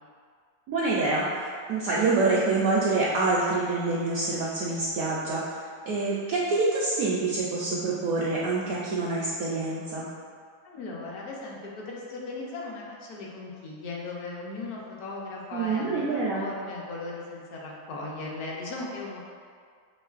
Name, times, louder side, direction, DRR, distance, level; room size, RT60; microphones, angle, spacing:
voice 1, 0.7-10.0 15.5-16.5, right 3 dB, 70° right, -5 dB, 0.8 m, -26 dB
voice 2, 10.6-19.2, left 3 dB, 65° left, -3 dB, 1.1 m, -37 dB
5.4 x 3.0 x 2.4 m, 2.1 s
omnidirectional pair, 1.9 m